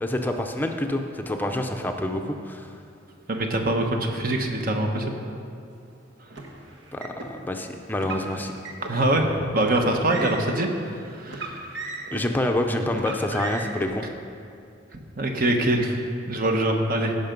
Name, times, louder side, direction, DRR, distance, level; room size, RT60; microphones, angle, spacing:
voice 1, 0.0-2.7 6.9-8.5 12.1-14.0, left 1 dB, 10° left, 4 dB, 0.6 m, -27 dB
voice 2, 3.3-5.2 8.9-11.7 14.9-17.2, right 1 dB, 50° right, 3 dB, 1.1 m, -24 dB
Car, 6.3-7.3 8.0-9.0 9.6-10.6 11.3-12.3 12.9-13.9, right 2 dB, 70° right, 1.3 m, -36 dB
16.5 x 5.7 x 5.3 m, 2.5 s
head